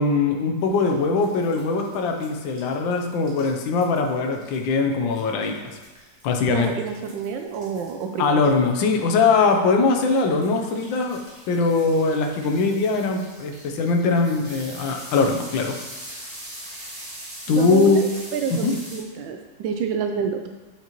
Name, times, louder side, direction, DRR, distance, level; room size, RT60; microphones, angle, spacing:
voice 1, 0.0-5.8 6.2-6.7 8.2-11.2 11.5-15.7 17.5-18.1 18.6-18.7, left 4 dB, 85° left, 3 dB, 1.5 m, -21 dB
sound 1, 0.6-19.0, right 1 dB, 30° right, 2.2 m, -43 dB
voice 2, 6.5-8.4 17.5-18.1 18.3-20.4, right 6 dB, 85° right, 5 dB, 1.3 m, -28 dB
8.2 x 5.3 x 3.0 m, 1.2 s
omnidirectional pair, 2.0 m